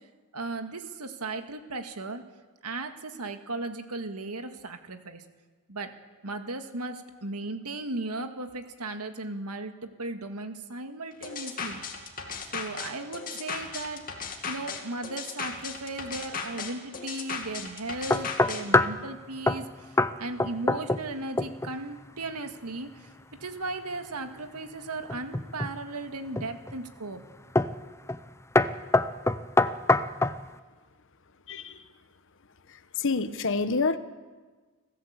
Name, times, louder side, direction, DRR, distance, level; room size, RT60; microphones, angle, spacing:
voice 1, 0.3-2.2 2.6-5.2 5.7-5.9 6.2-9.7 10.0-11.8 12.5-14.0 14.5-19.7 20.2-23.1 23.4-27.2, right 2 dB, 90° right, 7 dB, 1.9 m, -36 dB
sound 1, 11.2-18.6, left 5 dB, 40° left, 2.5 m, -36 dB
sound 2, 18.1-19.0 19.5-19.7 20.0-20.1 20.4-21.1 21.4-21.7 25.1-25.8 26.4-26.8 27.6-27.8 28.1-28.3 28.6-30.4, left 2 dB, 10° left, 0.6 m, -24 dB
voice 2, 31.5-31.9 32.7-34.0, left 4 dB, 60° left, 12 dB, 1.1 m, -28 dB
27.5 x 15.0 x 8.2 m, 1.4 s
head